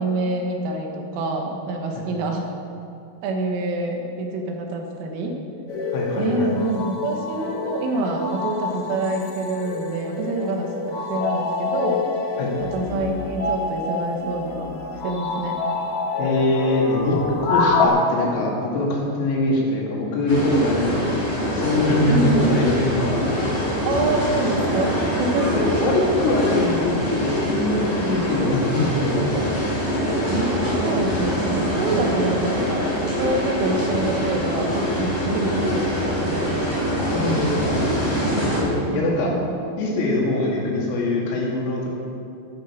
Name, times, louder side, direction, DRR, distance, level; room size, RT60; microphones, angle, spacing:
voice 1, 0.0-2.5 3.2-5.4 6.2-12.0 12.6-14.7 15.0-15.6 22.1-22.6 23.9-25.6 30.3-36.7 39.0-39.6, right 2 dB, 85° right, 2 dB, 3.8 m, -26 dB
sound 1, 5.7-17.9, left 4 dB, 65° left, 1.8 m, -27 dB
voice 2, 5.9-6.5 12.4-12.5 16.2-23.2 25.6-29.4 37.1-39.3 39.8-41.9, left 2 dB, 85° left, -3 dB, 4.8 m, -23 dB
sound 2, 20.3-38.6, equal, 10° left, 3.1 m, -24 dB
12.0 x 11.5 x 5.7 m, 2.6 s
omnidirectional pair, 5.7 m